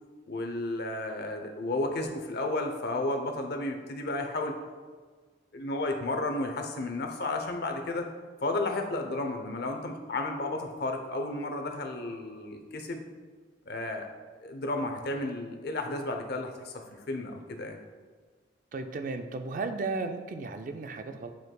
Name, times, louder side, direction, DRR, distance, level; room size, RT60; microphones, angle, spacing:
voice 1, 0.3-4.5 5.5-8.1 8.4-13.1 13.6-14.1 14.4-16.7 17.1-17.8, left 2 dB, 55° left, 4 dB, 0.7 m, -32 dB
voice 2, 18.7-21.3, right 3 dB, 45° right, 7 dB, 0.4 m, -34 dB
9.0 x 4.6 x 2.2 m, 1.5 s
head